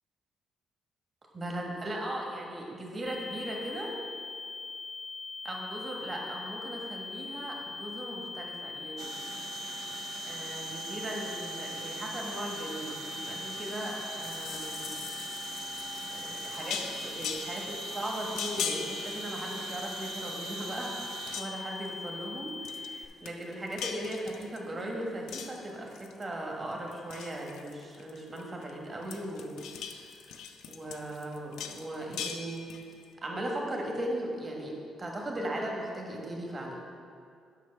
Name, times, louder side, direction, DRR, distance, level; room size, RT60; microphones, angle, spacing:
voice 1, 1.3-3.9 5.4-9.1 10.2-14.9 16.1-21.1 21.3-29.6 29.8-30.4 30.7-32.6 33.2-34.7 35.0-36.8, right 1 dB, 30° right, -1 dB, 1.4 m, -38 dB
sound 1, 3.1-23.1, left 4 dB, 25° left, 0.5 m, -41 dB
sound 2, 9.0-21.4, right 7 dB, 75° right, 0.4 m, -43 dB
sound 3, 14.2-20.1 20.4-20.9 21.2-21.8 22.6-22.9 23.2-24.8 25.3-26.3 26.7-28.7 29.0-33.0, left 7 dB, 85° left, 0.5 m, -41 dB
7.4 x 5.6 x 5.8 m, 2.3 s
cardioid pair, 90°, 0 cm